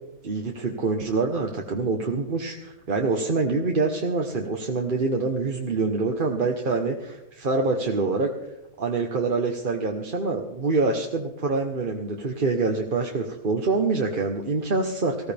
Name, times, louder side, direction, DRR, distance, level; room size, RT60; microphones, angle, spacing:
voice 1, 0.2-8.3 8.8-15.3, right 3 dB, 35° right, 2 dB, 1.2 m, -25 dB
19.0 x 16.0 x 3.5 m, 0.91 s
omnidirectional pair, 1.6 m